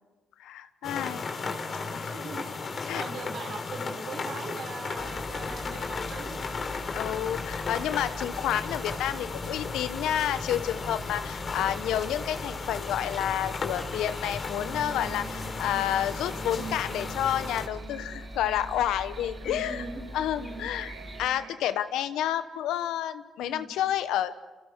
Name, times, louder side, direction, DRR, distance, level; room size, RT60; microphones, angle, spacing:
voice 1, 0.4-1.2 2.0-2.2 2.9-3.0 6.9-19.8 20.1-20.9 21.2-24.3, left 11 dB, 80° left, 12 dB, 1.1 m, -30 dB
sound 1, 0.8-17.7, left 4 dB, 50° left, 3.3 m, -35 dB
voice 2, 0.9-1.3 1.7-6.5 11.5-11.8 15.6-15.9 19.4-20.0 20.3-20.7 23.4-23.7, right 4 dB, 65° right, 4 dB, 4.5 m, -42 dB
sound 2, 5.0-21.3, equal, 5° left, 1.7 m, -43 dB
sound 3, 8.7-21.6, right 6 dB, 85° right, 1.7 m, -47 dB
29.5 x 28.0 x 4.6 m, 1.2 s
supercardioid pair, 55°, 0 cm